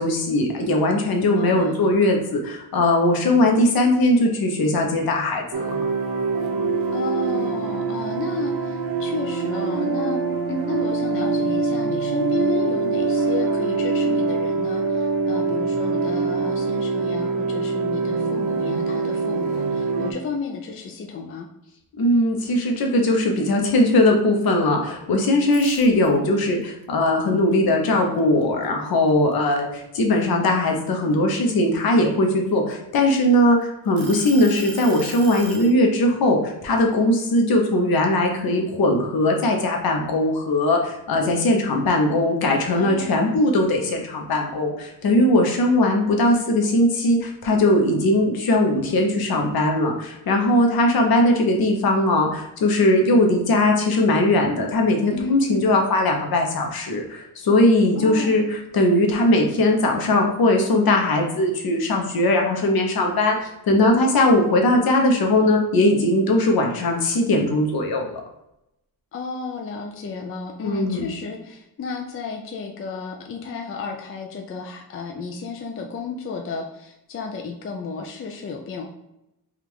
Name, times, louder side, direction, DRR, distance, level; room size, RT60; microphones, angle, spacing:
voice 1, 0.0-5.7 22.0-68.2 70.6-71.1, left 1 dB, 70° left, 2 dB, 0.9 m, -20 dB
voice 2, 1.3-1.8 6.9-10.2 10.5-21.5 42.7-43.2 55.1-55.6 57.9-58.4 69.1-78.9, left 5 dB, 35° left, 2 dB, 0.4 m, -33 dB
sound 1, 5.5-20.1, right 4 dB, 90° right, 0.7 m, -24 dB
sound 2, 25.4-26.4 26.8-28.6 29.1-29.3 29.8-31.6 32.3-33.4 34.0-35.7, right 4 dB, 35° right, 0.6 m, -39 dB
3.6 x 2.4 x 4.6 m, 0.86 s
wide cardioid pair, 145°, 37 cm